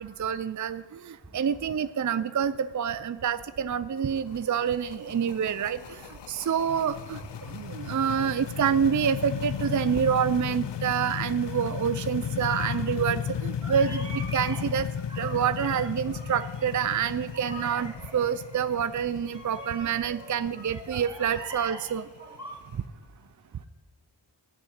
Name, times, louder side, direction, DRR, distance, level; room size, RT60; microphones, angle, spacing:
voice 1, 0.0-5.8 6.3-14.9 15.2-22.1, right 8 dB, 40° right, 13 dB, 0.5 m, -27 dB
sound 1, 4.0-22.7, left 8 dB, 60° left, 0.7 m, -35 dB
voice 2, 12.4-12.8 13.6-14.7 15.1-16.5 17.3-18.3 19.3-22.7, right 1 dB, 10° right, -4 dB, 4.1 m, -42 dB
13.0 x 6.4 x 9.2 m, 1.3 s
cardioid pair, 45°, 47 cm